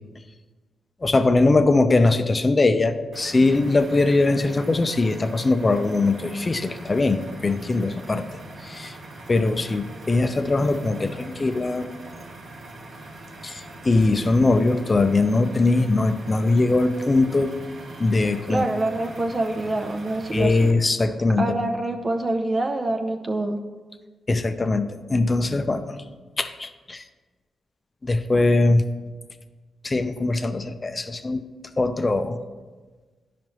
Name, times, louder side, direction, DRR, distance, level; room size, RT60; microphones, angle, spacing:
voice 1, 1.0-8.3 8.6-9.0 9.3-11.9 13.4-17.5 18.0-18.6 20.3-21.6 24.3-26.0 26.4-27.0 28.0-28.8 29.8-31.4 31.8-32.4, left 2 dB, 35° left, 8 dB, 0.6 m, -21 dB
sound 1, 3.1-20.7, right 2 dB, 60° right, 1.0 m, -42 dB
voice 2, 18.5-20.7 21.4-23.6, right 2 dB, 35° right, 4 dB, 0.7 m, -26 dB
10.5 x 5.0 x 3.1 m, 1.3 s
supercardioid pair, 50°, 0 cm